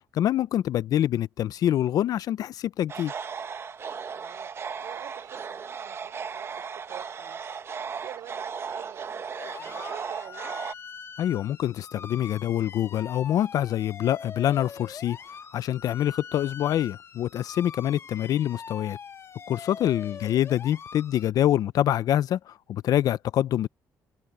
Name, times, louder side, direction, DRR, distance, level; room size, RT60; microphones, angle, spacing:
voice 1, 0.1-3.1 11.2-15.2 15.5-19.0 19.5-23.7, left 11 dB, 65° left, 0.5 m, -25 dB
sound 1, 2.9-10.7, right 6 dB, 40° right, 1.1 m, -36 dB
voice 2, 4.1-4.5 4.8-10.6 20.0-20.4, right 13 dB, 90° right, 4.2 m, -47 dB
sound 2, 9.4-21.3, left 6 dB, 40° left, 2.4 m, -43 dB
cardioid pair, 120°, 7 cm